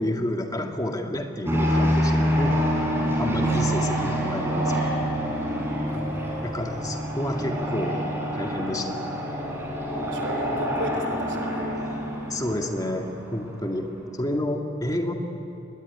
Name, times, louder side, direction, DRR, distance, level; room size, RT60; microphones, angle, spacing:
voice 1, 0.0-2.6 3.2-4.8 6.4-8.0 8.3-9.0 12.3-15.1, left 1 dB, 20° left, 3 dB, 2.0 m, -29 dB
sound 1, 1.5-13.5, equal, 15° right, 4.9 m, -26 dB
voice 2, 5.9-7.1 10.0-11.6, right 1 dB, 65° right, 4 dB, 3.3 m, -37 dB
24.5 x 20.5 x 9.9 m, 2.9 s
head